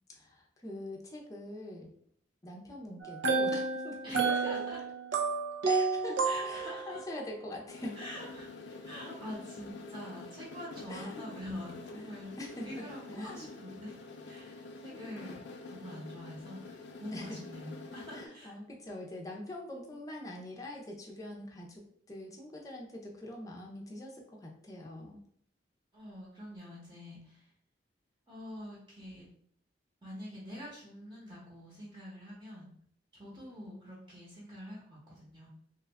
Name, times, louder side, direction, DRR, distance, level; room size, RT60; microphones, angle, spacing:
voice 1, 0.1-1.9 2.4-4.6 5.6-7.9 10.9-11.3 11.9-12.8 13.1-13.5 14.9-15.1 17.1-17.4 18.1-25.2 33.6-33.7, left 1 dB, 20° left, -1 dB, 0.6 m, -44 dB
sound 1, 3.0-7.0, right 4 dB, 75° right, 0.5 m, -31 dB
voice 2, 4.0-4.8 6.2-7.0 8.0-8.5 8.8-12.3 12.6-13.9 14.2-15.4 15.7-16.6 17.0-18.5 25.9-27.5 28.3-29.2 30.0-32.7 33.1-35.5, equal, 25° right, -6 dB, 1.0 m, -45 dB
sound 2, 7.7-18.3, left 3 dB, 65° left, 0.5 m, -47 dB
3.0 x 2.3 x 3.4 m, 0.65 s
head